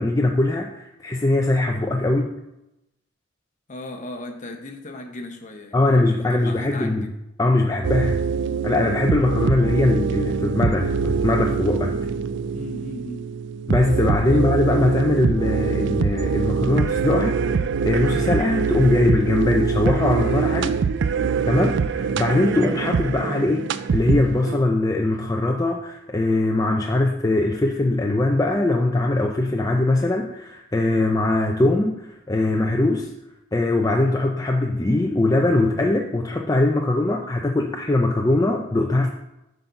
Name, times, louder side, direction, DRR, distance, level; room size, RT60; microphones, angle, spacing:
voice 1, 0.0-2.3 5.7-7.1 7.4-8.2 8.6-12.0 13.7-20.7 21.4-33.1 33.5-39.1, left 2 dB, 15° left, 0.5 m, -21 dB
voice 2, 3.7-7.1 8.4-8.7 9.6-9.9 12.5-13.3 14.3-14.4, left 2 dB, 40° left, 0.9 m, -37 dB
sound 1, 7.8-24.6, right 5 dB, 60° right, 0.4 m, -24 dB
7.7 x 4.0 x 5.7 m
head